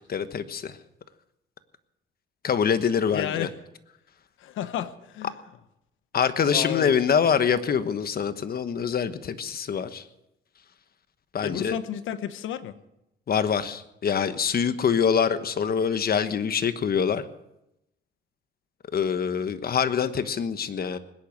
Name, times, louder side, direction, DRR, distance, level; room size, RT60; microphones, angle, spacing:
voice 1, 0.1-0.8 2.4-3.5 6.1-10.0 11.3-11.8 13.3-17.2 18.9-21.0, left 7 dB, 50° left, 11 dB, 1.3 m, -25 dB
voice 2, 3.1-3.5 4.4-5.3 6.5-6.9 11.4-12.8, left 11 dB, 85° left, 12 dB, 1.1 m, -32 dB
20.0 x 10.5 x 6.6 m, 0.85 s
cardioid pair, 90°, 20 cm